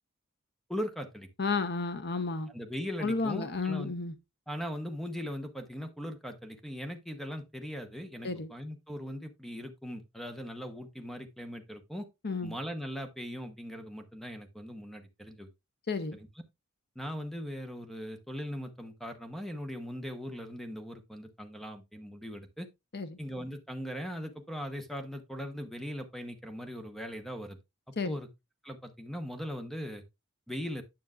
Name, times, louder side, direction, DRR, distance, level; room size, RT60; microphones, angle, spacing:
voice 1, 0.7-1.3 2.5-3.9 4.5-12.1 12.4-15.5 16.1-16.3 16.9-22.7 23.2-27.6 28.0-28.3 28.6-30.0 30.5-30.8, equal, ahead, 1.0 m, -39 dB
voice 2, 1.4-2.5 3.0-4.1 8.2-8.5 12.2-12.6 15.9-16.2 22.9-23.2 28.0-28.2, left 4 dB, 50° left, 0.8 m, -32 dB
9.6 x 6.3 x 2.4 m
head